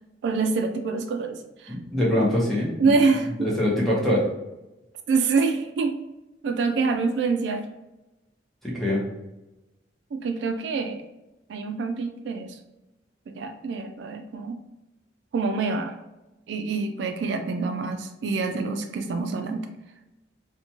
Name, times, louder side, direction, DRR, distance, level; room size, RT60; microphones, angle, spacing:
voice 1, 0.2-1.7 2.8-3.5 5.1-5.9 6.4-7.7 10.1-11.0 11.5-12.6 13.3-14.6 15.3-15.9 16.5-19.7, right 4 dB, 70° right, 6 dB, 0.3 m, -26 dB
voice 2, 1.7-2.9 3.4-4.3 8.6-9.0, left 1 dB, ahead, -5 dB, 0.7 m, -23 dB
2.8 x 2.2 x 2.8 m, 0.99 s
head